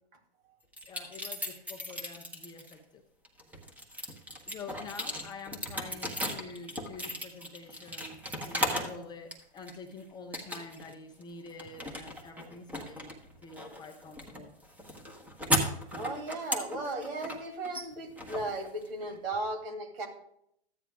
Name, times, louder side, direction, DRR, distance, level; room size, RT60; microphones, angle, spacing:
sound 1, 0.7-2.7 3.3-9.0 9.3-9.9 10.3-10.9 11.2-19.1, left 1 dB, 5° right, 1.0 m, -36 dB
voice 1, 0.9-3.0 4.5-8.2 8.4-13.1 13.4-14.5, left 4 dB, 15° left, 3 dB, 0.5 m, -47 dB
voice 2, 16.0-20.1, right 2 dB, 60° right, 4 dB, 2.6 m, -36 dB
14.0 x 9.1 x 2.3 m, 0.73 s
hypercardioid pair, 130°, 33 cm